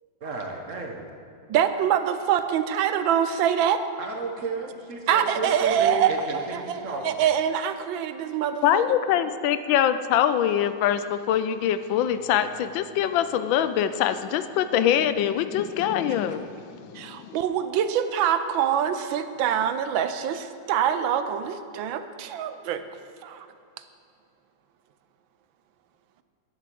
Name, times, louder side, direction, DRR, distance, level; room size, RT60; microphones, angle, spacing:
voice 1, 0.2-1.1 4.0-7.2 16.1-16.4, right 3 dB, 45° right, 2 dB, 1.3 m, -33 dB
voice 2, 1.5-3.8 5.1-6.8 7.0-8.8 16.9-22.8 23.2-23.5, right 9 dB, 85° right, 10 dB, 1.4 m, -25 dB
voice 3, 8.6-16.4 16.7-17.4, left 10 dB, 85° left, 12 dB, 1.3 m, -24 dB
11.0 x 7.6 x 6.9 m, 2.5 s
omnidirectional pair, 2.1 m